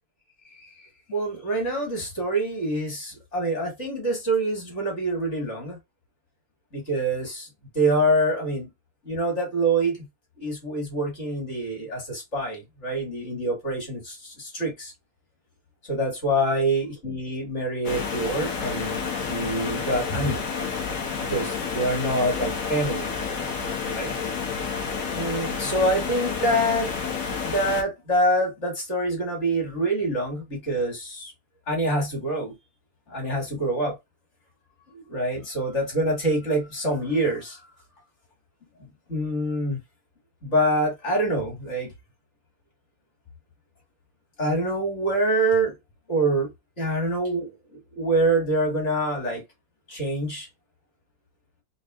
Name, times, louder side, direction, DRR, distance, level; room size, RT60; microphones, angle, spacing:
voice 1, 1.1-5.8 6.7-7.5 7.7-8.7 9.0-10.1 10.4-14.9 15.8-20.4 21.2-23.1 23.9-24.2 25.1-26.9 27.4-31.3 31.7-32.5 33.1-34.0 34.9-37.6 38.8-39.8 40.4-41.9 44.4-45.8 46.1-46.5 46.8-47.5 48.0-49.4 49.9-50.5, right 1 dB, 50° left, 2.3 m, -26 dB
sound 1, 17.8-27.8, left 5 dB, 70° left, 1.5 m, -30 dB
4.2 x 2.2 x 3.6 m
omnidirectional pair, 1.5 m